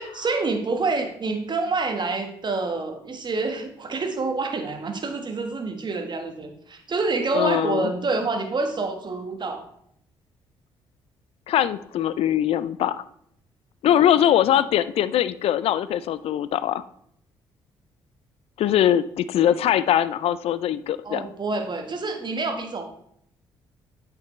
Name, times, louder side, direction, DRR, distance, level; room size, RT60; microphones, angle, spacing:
voice 1, 0.0-9.6 21.0-22.9, right 3 dB, 40° right, 5 dB, 1.5 m, -27 dB
voice 2, 7.3-7.9 11.5-13.0 13.8-16.8 18.6-21.2, left 11 dB, 60° left, 16 dB, 0.4 m, -22 dB
8.5 x 5.9 x 3.2 m, 0.70 s
hypercardioid pair, 45°, 11 cm